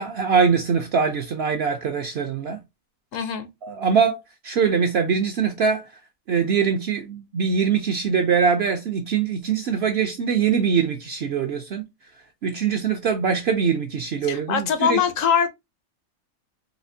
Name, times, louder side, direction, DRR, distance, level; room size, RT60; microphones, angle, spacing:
voice 1, 0.0-2.6 3.6-4.2 4.4-5.8 6.3-11.8 12.4-15.0, right 6 dB, 65° right, 0.6 m, -22 dB
voice 2, 3.1-3.5 14.3-15.5, left 7 dB, 70° left, 0.9 m, -22 dB
4.2 x 2.4 x 2.6 m
omnidirectional pair, 1.5 m